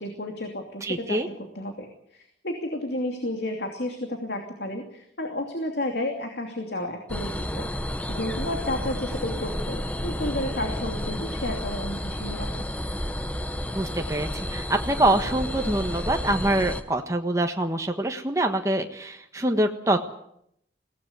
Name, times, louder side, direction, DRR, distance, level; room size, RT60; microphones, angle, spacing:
voice 1, 0.0-7.7 8.1-12.6, left 1 dB, 70° left, 3 dB, 2.8 m, -32 dB
voice 2, 0.8-1.3 13.7-20.0, right 1 dB, 15° right, 4 dB, 1.4 m, -25 dB
sound 1, 7.1-16.8, equal, 10° left, 1.0 m, -31 dB
22.0 x 17.5 x 8.2 m, 0.74 s
head